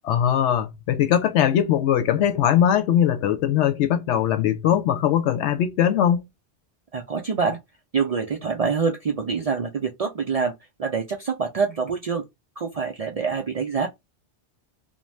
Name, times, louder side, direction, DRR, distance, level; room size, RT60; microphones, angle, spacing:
voice 1, 0.1-6.2, left 10 dB, 85° left, 0.9 m, -20 dB
voice 2, 6.9-7.6 7.9-10.5 10.8-12.2 12.6-13.9, right 5 dB, 65° right, 0.3 m, -25 dB
2.6 x 2.2 x 3.1 m
omnidirectional pair, 1.2 m